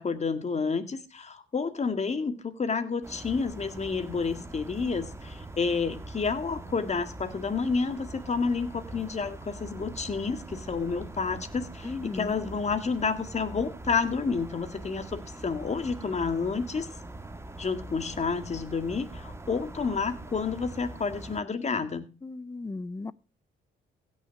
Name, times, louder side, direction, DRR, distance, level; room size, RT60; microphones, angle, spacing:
voice 1, 0.0-16.9 17.6-22.0, left 5 dB, 35° left, 1.9 m, -30 dB
sound 1, 3.0-21.4, right 2 dB, 15° right, 1.6 m, -43 dB
voice 2, 11.8-12.4 22.2-23.1, left 3 dB, 15° left, 0.5 m, -36 dB
16.0 x 6.5 x 6.5 m
cardioid pair, 90°, 20 cm